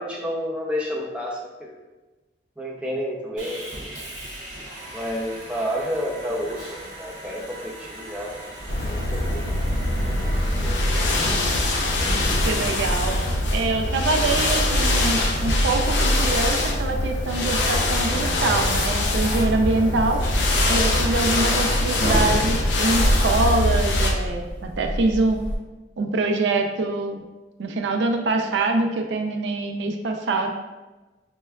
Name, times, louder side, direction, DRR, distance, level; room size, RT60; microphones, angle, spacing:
voice 1, 0.0-1.8 2.6-3.9 4.9-8.5 8.8-9.5 10.6-10.8, equal, 5° right, -3 dB, 0.4 m, -30 dB
Sawing, 3.4-11.3, right 1 dB, 45° right, 0.8 m, -39 dB
sound 1, 8.6-25.6, equal, 30° left, 0.8 m, -31 dB
sound 2, 8.7-24.1, left 1 dB, 85° left, 0.5 m, -23 dB
voice 2, 12.5-13.1 13.5-20.2 20.7-25.4 26.0-27.2 27.6-30.5, right 3 dB, 80° right, 3 dB, 0.4 m, -24 dB
5.2 x 2.2 x 2.2 m, 1.2 s
head